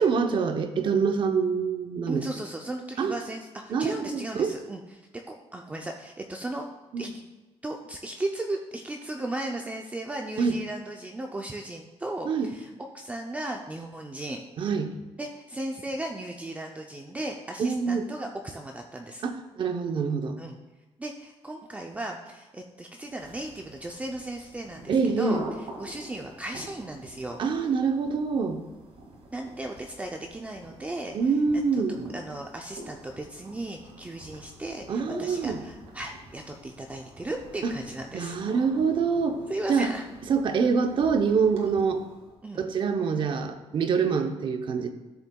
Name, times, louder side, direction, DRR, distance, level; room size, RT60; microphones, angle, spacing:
voice 1, 0.0-2.2 3.0-3.1 3.7-4.5 6.9-7.1 10.4-10.6 12.3-12.5 14.6-14.9 17.6-18.1 19.2-20.4 24.9-25.4 27.4-28.6 31.1-32.0 34.9-35.6 37.6-37.7 38.1-39.4 39.7-39.9 40.3-42.0 42.6-44.9, right 5 dB, 45° right, 7 dB, 0.7 m, -25 dB
voice 2, 2.1-4.8 5.3-6.7 7.0-7.1 7.6-14.4 15.2-19.2 20.4-20.6 21.0-27.4 29.3-31.1 32.1-38.4 39.5-40.0 42.4-42.6, right 1 dB, 15° right, 2 dB, 0.5 m, -36 dB
sound 1, 23.1-42.4, right 1 dB, 70° right, 2.0 m, -46 dB
13.0 x 7.0 x 2.3 m, 1.2 s
cardioid pair, 155°, 11 cm